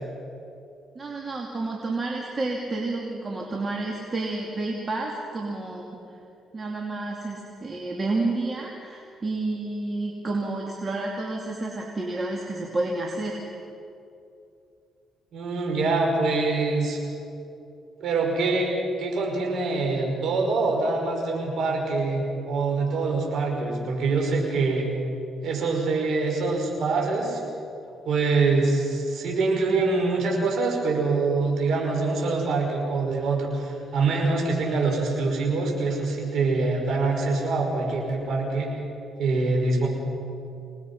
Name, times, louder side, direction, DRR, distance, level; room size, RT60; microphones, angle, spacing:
voice 1, 0.9-5.8 6.5-13.4, right 2 dB, 35° right, -1 dB, 2.7 m, -30 dB
voice 2, 15.3-17.0 18.0-18.7 19.0-24.9 25.4-27.4 28.0-38.7 39.2-39.9, right 3 dB, 70° right, 0 dB, 5.5 m, -24 dB
26.0 x 19.5 x 5.6 m, 2.6 s
cardioid pair, 90°, 0 cm